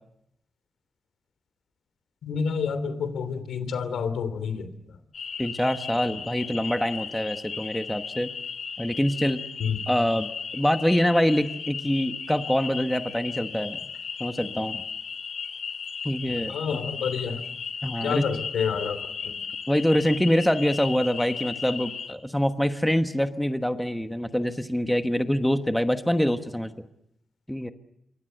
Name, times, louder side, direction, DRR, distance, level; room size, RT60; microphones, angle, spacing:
voice 1, 2.2-4.7 9.6-9.8 16.5-17.4 18.0-19.4, left 6 dB, 80° left, 11 dB, 3.0 m, -29 dB
sound 1, 5.1-22.1, left 6 dB, 55° left, 3.1 m, -36 dB
voice 2, 5.4-8.3 8.8-9.4 9.9-10.3 10.5-13.8 14.2-14.8 16.0-16.5 17.8-18.2 19.7-26.7 27.5-27.7, equal, 5° left, 8 dB, 1.2 m, -25 dB
27.0 x 24.0 x 7.9 m, 0.78 s
wide cardioid pair, 140°, 0 cm